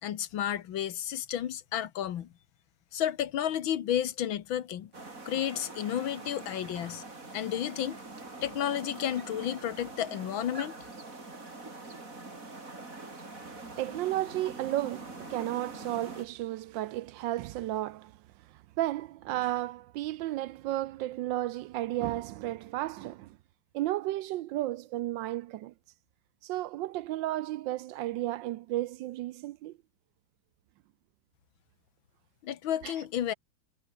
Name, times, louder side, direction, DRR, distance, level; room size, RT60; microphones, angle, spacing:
voice 1, 0.0-2.3 2.9-4.9 5.3-7.0 7.3-8.0 8.4-10.7 32.4-33.3, left 10 dB, 70° left, 1.9 m, -32 dB
sound 1, 4.9-16.3, right 3 dB, 40° right, 4.8 m, -44 dB
voice 2, 13.5-18.1 18.8-23.4 23.7-25.7 26.4-29.7 32.8-32.9, right 15 dB, 75° right, 1.1 m, -33 dB
omnidirectional pair, 2.3 m